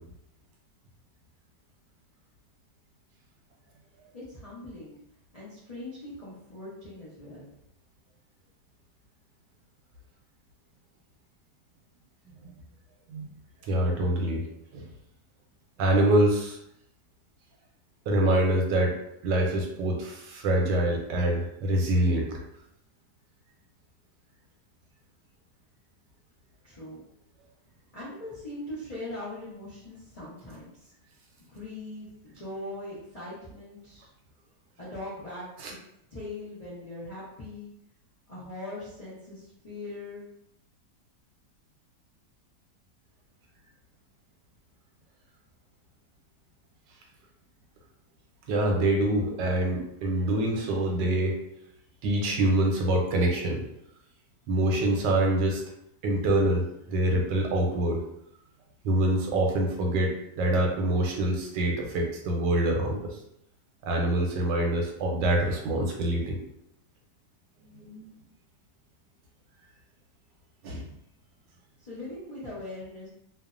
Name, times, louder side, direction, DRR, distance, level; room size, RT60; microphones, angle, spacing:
voice 1, 4.1-5.0 5.3-7.5 26.6-27.0 27.9-30.9 31.5-34.1 34.8-35.5 36.1-37.7 38.3-40.2 71.8-73.1, left 2 dB, 50° left, -9 dB, 0.4 m, -40 dB
voice 2, 13.6-14.4 14.7-14.8 15.8-16.6 18.1-18.9 19.2-22.4 35.6-35.7 48.5-51.4 52.0-53.6 54.5-55.6 56.0-58.0 58.8-63.2 63.8-66.4 67.8-68.0 70.6-70.8, right 1 dB, 80° right, 0 dB, 1.3 m, -25 dB
3.1 x 2.0 x 2.4 m, 0.76 s
omnidirectional pair, 1.9 m